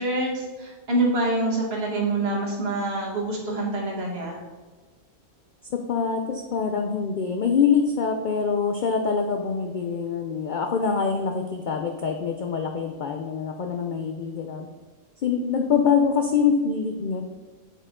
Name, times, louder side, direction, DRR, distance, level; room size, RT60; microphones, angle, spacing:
voice 1, 0.0-4.4, right 2 dB, 50° right, -1 dB, 1.5 m, -26 dB
voice 2, 5.7-14.7 15.2-17.2, left 6 dB, 65° left, 4 dB, 0.4 m, -24 dB
8.1 x 4.5 x 3.6 m, 1.3 s
omnidirectional pair, 1.4 m